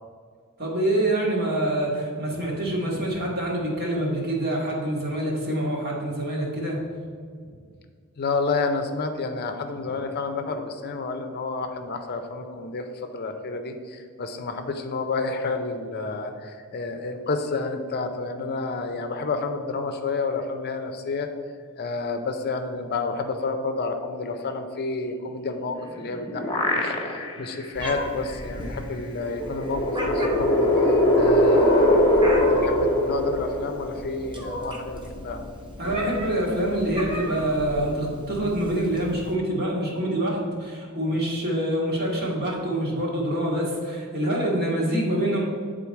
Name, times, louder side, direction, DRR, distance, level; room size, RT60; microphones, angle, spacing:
voice 1, 0.6-6.8 35.8-45.4, right 1 dB, 50° right, -3 dB, 1.7 m, -26 dB
voice 2, 8.2-21.3 21.8-35.4, left 3 dB, 50° left, 6 dB, 0.5 m, -30 dB
sound 1, 25.8-27.4 27.9-28.0 29.3-34.1, left 1 dB, 25° left, 1.1 m, -21 dB
Meow, 27.8-39.3, equal, 25° right, 0.9 m, -35 dB
8.6 x 3.8 x 4.6 m, 2.1 s
head